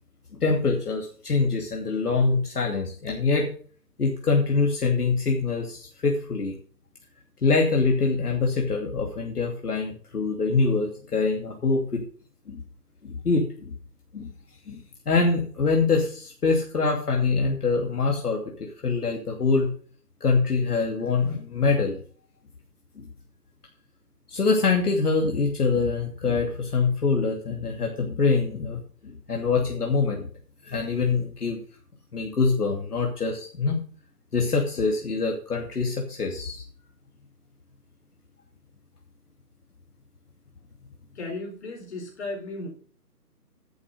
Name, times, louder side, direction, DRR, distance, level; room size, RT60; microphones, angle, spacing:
voice 1, 0.4-3.5 4.0-6.5 7.4-12.0 12.5-12.6 13.0-13.7 14.1-14.3 14.7-14.8 15.1-18.4 18.8-19.7 20.2-22.0 24.3-30.3 30.6-31.6 32.1-33.8 34.3-36.6, left 4 dB, 65° left, 1 dB, 2.7 m, -24 dB
voice 2, 41.1-42.7, left 2 dB, 40° left, 1 dB, 4.3 m, -35 dB
11.0 x 8.3 x 5.2 m, 0.43 s
hypercardioid pair, 165°, 49 cm